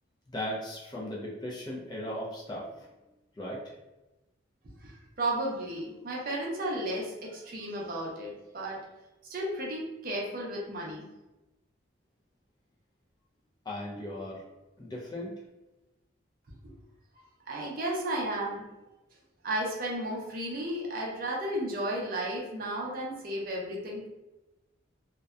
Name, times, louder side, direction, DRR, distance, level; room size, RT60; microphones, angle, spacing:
voice 1, 0.3-2.9 3.4-3.7 13.7-14.4 14.8-15.3, left 1 dB, 20° left, -4 dB, 0.3 m, -37 dB
voice 2, 4.8-8.8 9.2-11.1 16.6-16.7 17.5-18.7 19.4-24.1, right 1 dB, 45° right, -2 dB, 0.5 m, -33 dB
2.6 x 2.1 x 2.2 m, 1.0 s
head